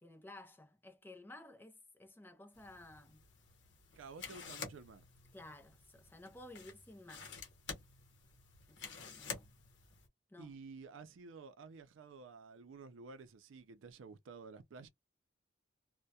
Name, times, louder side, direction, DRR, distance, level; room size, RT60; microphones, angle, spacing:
voice 1, 0.0-3.2 5.3-7.3 8.7-9.5 10.3-10.5, left 1 dB, 10° left, 0.5 m, -55 dB
sound 1, 2.5-10.1, left 5 dB, 70° left, 0.8 m, -50 dB
voice 2, 3.9-5.1 10.4-14.9, right 4 dB, 90° right, 0.4 m, -52 dB
2.2 x 2.1 x 2.7 m
head